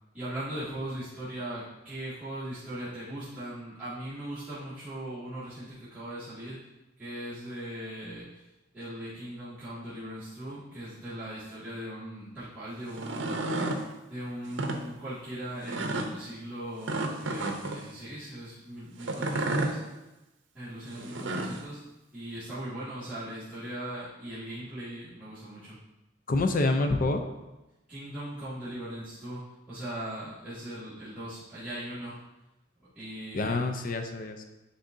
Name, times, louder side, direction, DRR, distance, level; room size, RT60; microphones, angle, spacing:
voice 1, 0.1-6.6 7.0-8.5 8.7-13.6 14.1-19.8 20.5-21.8 22.1-25.8 27.9-29.4 29.7-32.2 32.9-33.7, right 1 dB, 10° right, -16 dB, 2.0 m, -39 dB
sound 1, 12.9-13.8 14.5-14.8 15.7-16.1 16.8-17.8 19.0-19.7 20.9-21.6, right 2 dB, 70° right, 0.7 m, -31 dB
voice 2, 26.3-27.2 33.3-34.4, left 2 dB, 45° left, 6 dB, 0.5 m, -27 dB
9.6 x 3.9 x 2.7 m, 1.0 s
head